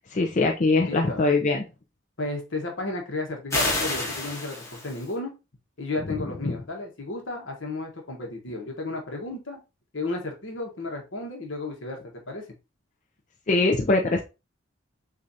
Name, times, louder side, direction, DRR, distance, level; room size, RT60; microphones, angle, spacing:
voice 1, 0.1-1.6 6.4-6.5 13.5-14.2, left 3 dB, 40° left, 0 dB, 0.5 m, -22 dB
voice 2, 0.9-1.2 2.2-5.3 5.8-9.6 9.9-12.5, left 2 dB, 65° left, 2 dB, 1.3 m, -33 dB
sound 1, 3.5-5.1, left 2 dB, 15° left, 1.1 m, -28 dB
6.5 x 2.6 x 2.7 m, 0.27 s
head